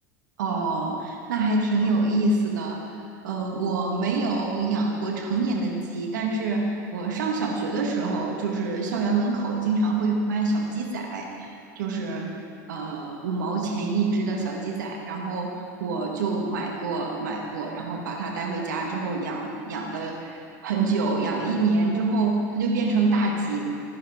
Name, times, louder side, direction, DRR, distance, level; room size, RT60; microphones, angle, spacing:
voice 1, 0.4-12.4 12.7-23.6, right 3 dB, 80° right, 0 dB, 1.8 m, -26 dB
16.0 x 11.0 x 5.1 m, 2.5 s
hypercardioid pair, 85°, 10 cm